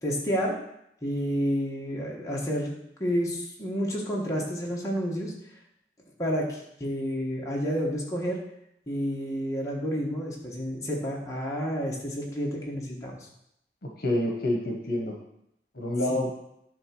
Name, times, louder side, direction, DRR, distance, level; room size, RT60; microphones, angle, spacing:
voice 1, 0.0-0.5 1.0-2.7 3.0-5.3 6.2-8.4 8.9-13.2 16.1-16.2, equal, 20° left, -3 dB, 1.7 m, -30 dB
voice 2, 14.0-15.1 15.7-16.3, left 1 dB, 55° left, 1 dB, 1.3 m, -27 dB
10.5 x 3.8 x 6.1 m, 0.79 s
head